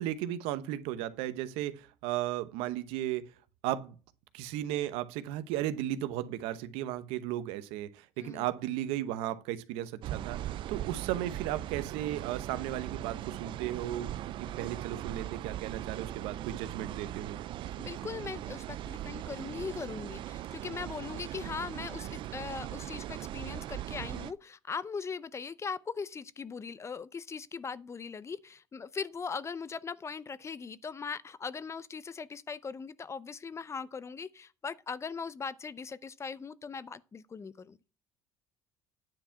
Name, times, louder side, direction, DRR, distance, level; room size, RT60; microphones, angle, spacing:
voice 1, 0.0-3.3 3.6-4.0 4.3-14.1 14.4-17.4, right 13 dB, 80° right, 0.9 m, -35 dB
sound 1, 10.0-24.3, right 13 dB, 60° right, 0.5 m, -39 dB
voice 2, 17.8-37.8, left 5 dB, 30° left, 0.7 m, -40 dB
9.8 x 4.5 x 5.8 m
supercardioid pair, 85°, 10 cm